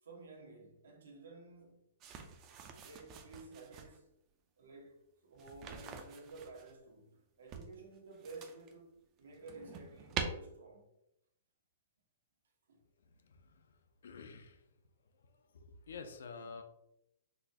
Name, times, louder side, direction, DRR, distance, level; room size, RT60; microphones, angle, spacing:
voice 1, 0.0-1.9 2.8-4.1 4.6-10.9 12.7-12.8, right 3 dB, 90° right, 1.1 m, -53 dB
sound 1, 2.0-4.0 5.4-6.7 7.5-8.7 9.2-10.2, right 7 dB, 25° right, 0.4 m, -45 dB
voice 2, 13.1-13.7 14.0-14.6 15.2-16.6, left 5 dB, 80° left, 0.5 m, -50 dB
4.0 x 2.3 x 2.7 m
hypercardioid pair, 165°, 0 cm